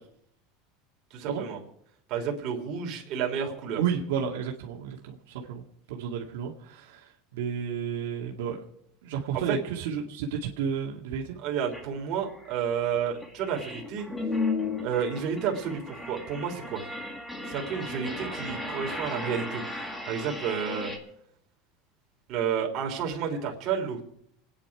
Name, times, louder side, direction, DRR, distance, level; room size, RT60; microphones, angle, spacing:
voice 1, 1.1-1.6 2.1-3.8 9.3-9.6 11.4-14.1 14.8-16.8 17.5-20.9 22.3-24.0, right 7 dB, 40° right, 0 dB, 3.5 m, -31 dB
voice 2, 3.8-5.6 5.9-8.6 9.0-11.4, right 7 dB, 90° right, 0 dB, 2.2 m, -32 dB
sound 1, 11.7-11.8 12.3-21.0, left 2 dB, 10° left, 1.9 m, -35 dB
28.5 x 9.7 x 4.9 m, 0.69 s
supercardioid pair, 165°, 0 cm